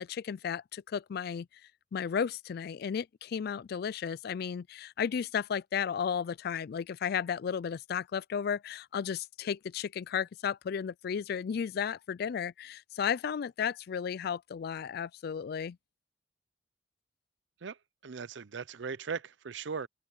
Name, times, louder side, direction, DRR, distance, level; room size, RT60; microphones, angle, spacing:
voice 1, 0.0-1.5 1.9-15.8, left 7 dB, 55° left, 0.3 m, -34 dB
voice 2, 18.0-19.9, right 5 dB, 70° right, 0.6 m, -38 dB
open air
head